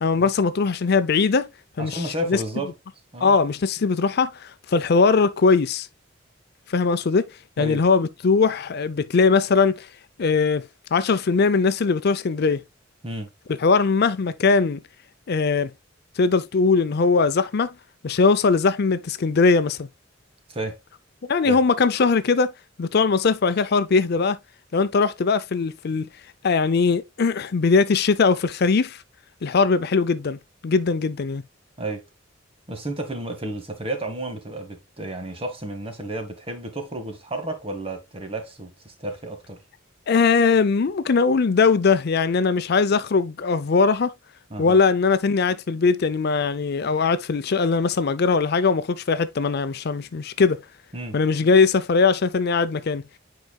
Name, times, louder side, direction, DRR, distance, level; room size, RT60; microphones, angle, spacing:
voice 1, 0.0-1.5 1.8-2.4 3.2-5.9 6.7-7.3 7.6-9.9 10.2-10.6 10.9-12.6 13.6-14.8 15.3-15.7 16.2-17.7 18.0-19.9 21.3-22.5 22.8-24.4 24.7-26.1 26.4-29.0 29.4-31.4 40.1-44.1 44.6-50.6 51.1-53.0, left 4 dB, 55° left, 0.5 m, -20 dB
voice 2, 1.8-2.7 3.1-3.4 7.6-7.8 13.0-13.3 20.5-20.8 21.4-21.6 31.8-32.0 32.7-39.6 44.5-44.8 50.9-51.2, right 1 dB, 30° right, 1.8 m, -32 dB
9.3 x 4.8 x 2.3 m
head